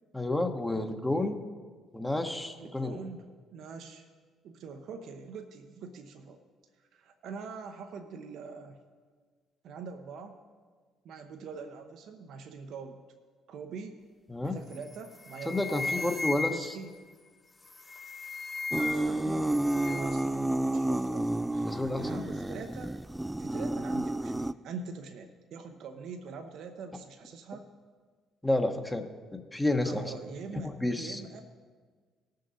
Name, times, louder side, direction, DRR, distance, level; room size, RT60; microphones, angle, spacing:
voice 1, 0.1-1.4 1.9-3.0 14.3-14.6 15.5-16.8 21.6-22.3 28.4-29.0 29.3-30.0 30.8-31.2, left 2 dB, 10° left, 5 dB, 1.2 m, -30 dB
voice 2, 2.6-3.2 3.5-4.1 4.4-6.4 6.9-8.8 9.6-10.4 11.0-13.0 13.5-14.0 14.4-16.9 18.8-23.0 23.4-27.7 29.8-31.4, right 5 dB, 70° right, 6 dB, 0.8 m, -44 dB
sound 1, 14.7-15.0 15.2-16.9 17.7-19.2 19.4-20.2, left 3 dB, 25° left, 0.6 m, -36 dB
sound 2, 18.7-24.5, right 1 dB, 10° right, 0.3 m, -30 dB
18.5 x 6.5 x 4.1 m, 1.5 s
hypercardioid pair, 60°, 0 cm